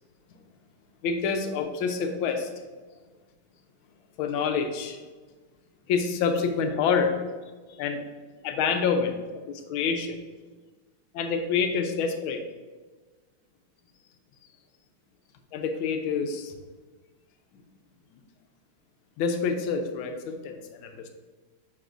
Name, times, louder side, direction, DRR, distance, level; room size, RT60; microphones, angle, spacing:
voice 1, 1.0-2.5 4.2-5.0 5.9-7.2 7.7-8.0 8.4-9.2 9.5-10.2 11.1-12.4 15.5-16.6 19.2-21.1, left 5 dB, 90° left, 6 dB, 1.5 m, -27 dB
9.2 x 4.0 x 2.5 m, 1.3 s
omnidirectional pair, 2.2 m